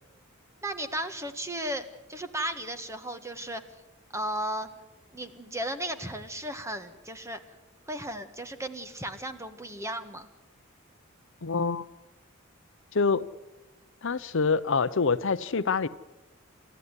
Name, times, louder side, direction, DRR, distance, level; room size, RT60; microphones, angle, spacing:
voice 1, 0.6-1.8 2.1-3.6 4.1-4.7 5.1-7.4 7.9-10.3, right 1 dB, 15° right, 8 dB, 1.5 m, -35 dB
voice 2, 11.4-11.9 12.9-13.2 14.0-15.9, left 4 dB, 60° left, 14 dB, 0.7 m, -26 dB
28.5 x 14.0 x 9.7 m, 1.1 s
head